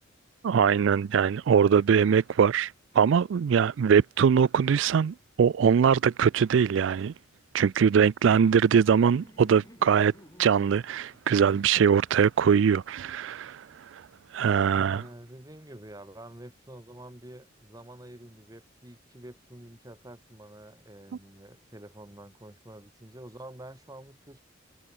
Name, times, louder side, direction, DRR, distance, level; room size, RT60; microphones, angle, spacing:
voice 1, 0.4-7.1 7.5-10.1 10.4-14.1 14.3-15.0, right 7 dB, 70° right, 0.3 m, -22 dB
Laughter, 8.5-13.2, equal, 20° left, 3.3 m, -56 dB
voice 2, 14.8-24.4, right 1 dB, 20° right, 1.8 m, -47 dB
head